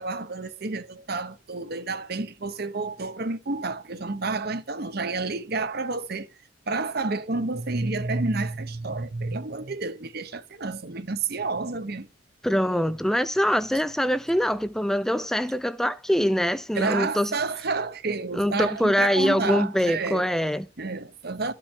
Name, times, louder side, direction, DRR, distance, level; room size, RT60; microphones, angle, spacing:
voice 1, 0.0-6.3 6.7-12.1 16.7-20.3 20.8-21.5, right 3 dB, 55° right, 1.0 m, -30 dB
voice 2, 12.4-17.3 18.3-20.7, equal, ahead, 0.4 m, -24 dB
13.5 x 5.9 x 3.3 m
head